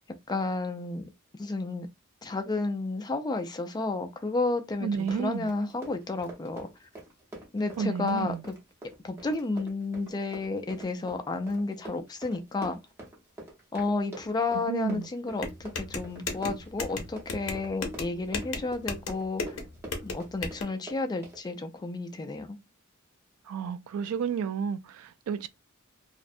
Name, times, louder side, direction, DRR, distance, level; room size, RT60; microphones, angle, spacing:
voice 1, 0.3-1.1 1.4-1.9 2.2-6.7 7.5-8.5 9.0-12.8 13.7-19.6 20.0-22.6, left 3 dB, 20° left, 0.3 m, -31 dB
voice 2, 4.8-5.5 7.8-8.4 14.7-15.1 23.5-25.5, right 6 dB, 80° right, 0.3 m, -31 dB
Run, 5.0-21.4, right 2 dB, 10° right, 0.8 m, -46 dB
sound 1, 15.4-20.6, left 3 dB, 65° left, 0.7 m, -36 dB
2.5 x 2.1 x 2.5 m
head